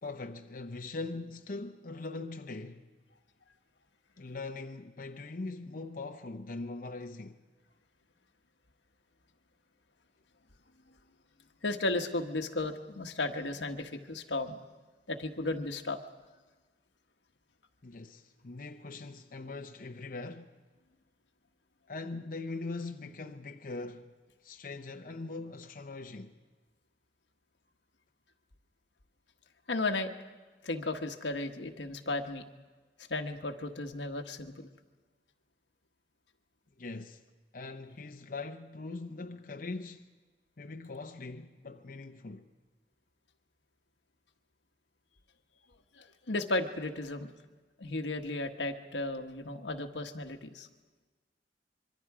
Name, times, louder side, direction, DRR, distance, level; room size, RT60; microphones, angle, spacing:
voice 1, 0.0-2.9 4.2-7.4 17.8-20.5 21.9-24.1 24.4-26.4 36.8-37.2 37.5-40.0 40.6-42.5, left 3 dB, 50° left, 0.7 m, -41 dB
voice 2, 11.6-14.6 15.1-16.0 29.7-30.1 30.6-32.4 33.1-34.7 45.9-47.3 47.8-50.7, left 2 dB, 90° left, 1.3 m, -34 dB
25.5 x 23.5 x 4.9 m
head